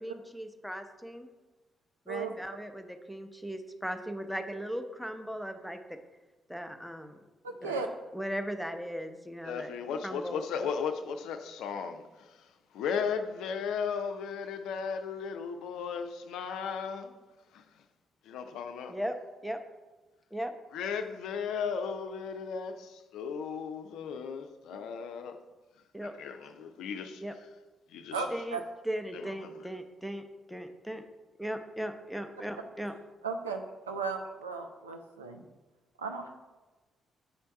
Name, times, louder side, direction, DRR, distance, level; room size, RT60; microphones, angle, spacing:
voice 1, 0.0-1.3 2.1-5.8 6.5-7.2 7.6-7.8 8.1-9.7 10.0-10.4 18.9-19.2 19.4-19.6 20.3-20.5 25.9-26.1 27.2-27.3 28.3-30.2 30.5-31.0 31.4-32.9, equal, ahead, 0.6 m, -37 dB
voice 2, 7.4-7.9 28.1-28.6 33.2-33.6 33.9-35.4 36.0-36.3, right 4 dB, 85° right, 0.4 m, -35 dB
voice 3, 9.4-12.5 12.7-17.1 17.5-17.6 18.2-19.0 20.7-25.4 26.0-27.2 27.9-28.3 29.1-29.7, left 6 dB, 65° left, 0.4 m, -36 dB
6.9 x 3.4 x 4.4 m
figure-of-eight pair, 40°, 0 cm